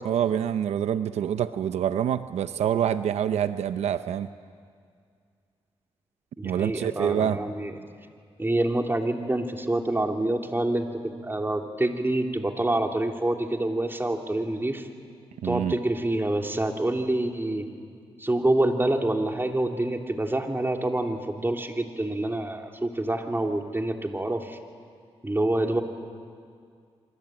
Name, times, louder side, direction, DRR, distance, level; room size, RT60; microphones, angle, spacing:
voice 1, 0.0-4.3 6.4-7.4 15.4-15.8, right 9 dB, 90° right, 12 dB, 0.7 m, -26 dB
voice 2, 6.4-7.7 8.4-14.9 15.4-17.7 18.2-24.6 25.2-25.8, right 1 dB, 20° right, 3 dB, 3.1 m, -27 dB
27.0 x 24.5 x 8.9 m, 2.2 s
cardioid pair, 60°, 11 cm